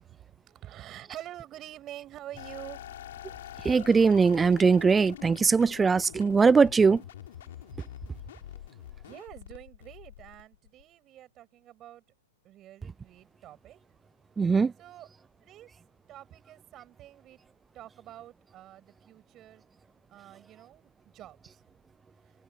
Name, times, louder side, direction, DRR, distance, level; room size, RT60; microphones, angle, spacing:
voice 1, 0.0-2.9 9.0-12.0 12.4-13.8 14.8-15.1 15.4-15.7 16.1-17.4 17.7-19.6 20.1-21.6, right 13 dB, 30° right, 7.6 m, -47 dB
sound 1, 2.4-10.8, left 12 dB, 70° left, 5.1 m, -45 dB
voice 2, 3.6-7.0 14.4-14.7, right 5 dB, 15° right, 0.4 m, -21 dB
open air
hypercardioid pair, 115°, 0 cm